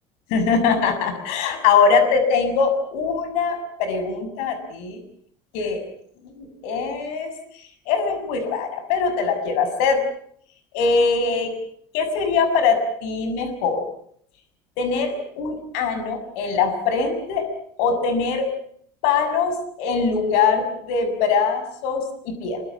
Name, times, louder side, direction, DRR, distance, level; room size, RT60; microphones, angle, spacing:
voice 1, 0.3-5.0 5.5-5.8 6.4-7.3 7.9-10.0 10.7-11.5 11.9-13.8 14.8-17.5 17.8-18.5 19.0-22.6, left 5 dB, 75° left, 8 dB, 6.5 m, -22 dB
27.0 x 24.5 x 7.2 m, 0.64 s
cardioid pair, 170°, 12 cm